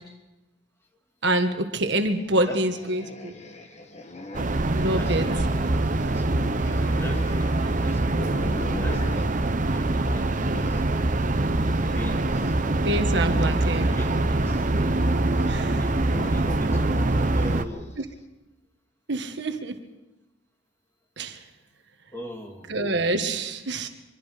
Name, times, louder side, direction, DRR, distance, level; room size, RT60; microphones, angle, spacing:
voice 1, 1.2-3.3 4.7-5.3 12.4-12.5 12.8-13.9 15.5-15.8 19.1-19.8 21.2-21.4 22.7-23.9, right 1 dB, 65° right, 6 dB, 1.6 m, -26 dB
sound 1, 2.2-10.9 11.2-18.0, left 2 dB, 35° left, 2.0 m, -41 dB
sound 2, 4.3-17.6, right 2 dB, 40° right, 0.9 m, -24 dB
voice 2, 4.9-5.6 5.9-8.2 8.8-10.9 11.5-12.6 13.5-14.6 15.7-18.0 22.1-22.8, equal, 15° left, 2 dB, 2.5 m, -40 dB
24.5 x 23.0 x 5.1 m, 1.0 s
head